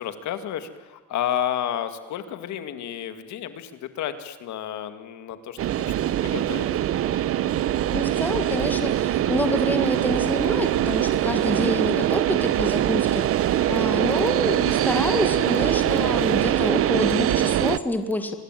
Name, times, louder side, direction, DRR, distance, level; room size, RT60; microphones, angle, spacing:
voice 1, 0.0-5.9 6.2-6.7 14.1-14.3, left 10 dB, 60° left, 10 dB, 2.2 m, -31 dB
sound 1, 5.6-17.8, right 12 dB, 45° right, 0.8 m, -23 dB
voice 2, 7.9-13.2 13.7-18.4, left 1 dB, 5° left, 7 dB, 1.9 m, -27 dB
26.0 x 20.5 x 9.2 m, 1.2 s
cardioid pair, 155°, 32 cm